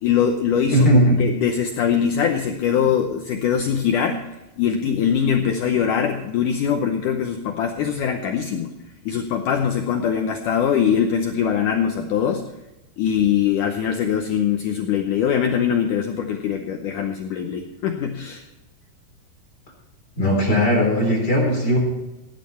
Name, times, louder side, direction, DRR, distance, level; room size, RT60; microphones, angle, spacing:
voice 1, 0.0-4.3 4.6-8.7 9.0-12.4 13.0-18.4, left 8 dB, 80° left, 4 dB, 1.8 m, -22 dB
voice 2, 0.7-1.2 20.2-21.8, equal, 25° left, -1 dB, 4.0 m, -18 dB
16.0 x 10.5 x 4.3 m, 1.0 s
omnidirectional pair, 4.8 m